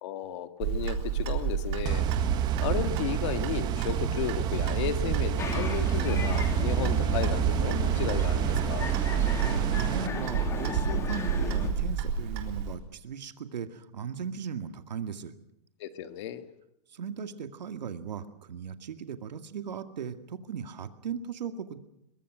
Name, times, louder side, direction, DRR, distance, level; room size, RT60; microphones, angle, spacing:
voice 1, 0.0-2.1 2.6-8.9 15.8-16.4, left 11 dB, 45° left, 9 dB, 1.9 m, -34 dB
Clock, 0.6-12.7, right 7 dB, 40° right, 3.8 m, -31 dB
sound 1, 1.9-10.1, right 10 dB, 20° right, 1.1 m, -29 dB
sound 2, 5.4-11.7, left 4 dB, 15° left, 2.3 m, -36 dB
voice 2, 9.5-15.3 16.9-21.8, right 7 dB, 90° right, 8 dB, 2.1 m, -37 dB
23.5 x 21.5 x 6.3 m, 0.81 s
hypercardioid pair, 160°, 21 cm